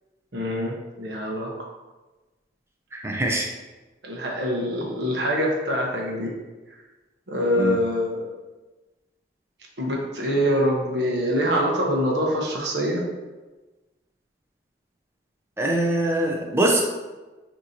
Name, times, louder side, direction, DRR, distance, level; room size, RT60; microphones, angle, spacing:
voice 1, 0.3-1.5 4.0-6.3 7.3-8.3 9.8-13.0, equal, 75° right, -1 dB, 1.0 m, -24 dB
voice 2, 2.9-3.5 7.6-7.8 15.6-16.8, right 1 dB, 15° right, 1 dB, 0.5 m, -23 dB
6.4 x 2.9 x 2.7 m, 1.2 s
head